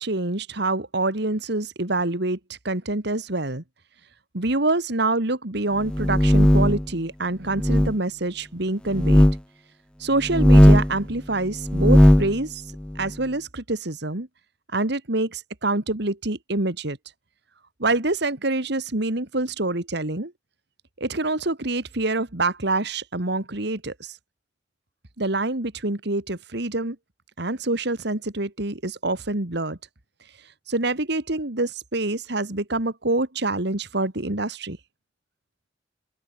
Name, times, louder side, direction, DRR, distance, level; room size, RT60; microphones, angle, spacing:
voice 1, 0.0-3.6 4.3-9.3 10.0-12.6 13.0-14.3 14.7-17.0 17.8-20.3 21.0-24.2 25.2-27.0 27.4-29.8 30.7-34.8, right 2 dB, 65° right, 2.4 m, -26 dB
sound 1, 5.9-6.8 7.6-7.9 8.9-9.4 10.2-11.0 11.6-12.3, equal, 5° left, 0.5 m, -16 dB
open air
head